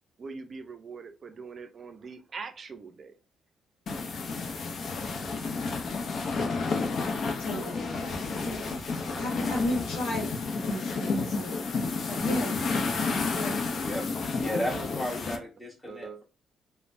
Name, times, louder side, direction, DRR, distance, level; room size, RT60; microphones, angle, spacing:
voice 1, 0.2-3.1 11.5-11.9 14.3-14.8 15.9-16.2, right 5 dB, 45° right, 8 dB, 0.5 m, -43 dB
sound 1, 3.9-15.4, left 4 dB, 55° left, 0.6 m, -31 dB
voice 2, 7.4-8.8 9.1-10.3 10.5-11.6 12.1-12.7 13.0-13.8, left 1 dB, 85° left, -2 dB, 0.9 m, -35 dB
voice 3, 13.8-16.2, left 1 dB, 5° left, -3 dB, 1.5 m, -34 dB
3.2 x 2.1 x 2.5 m, 0.31 s
cardioid pair, 90°, 0 cm